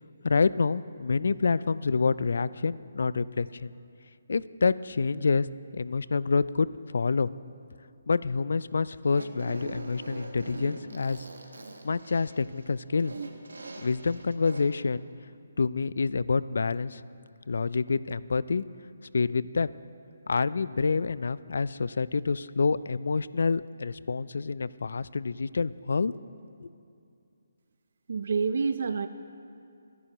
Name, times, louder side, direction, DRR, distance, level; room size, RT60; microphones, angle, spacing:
voice 1, 0.2-3.7 4.3-5.5 5.7-6.7 6.9-7.3 8.1-11.2 11.8-13.1 13.8-15.1 15.6-17.0 17.5-18.6 19.1-19.7 20.3-26.2 26.6-26.7, left 4 dB, 70° left, 18 dB, 0.3 m, -27 dB
Fart, 9.0-14.8, right 3 dB, 85° right, 1.4 m, -42 dB
voice 2, 28.1-29.1, right 5 dB, 60° right, 9 dB, 0.5 m, -27 dB
22.0 x 11.0 x 3.0 m, 2.5 s
hypercardioid pair, 155°, 0 cm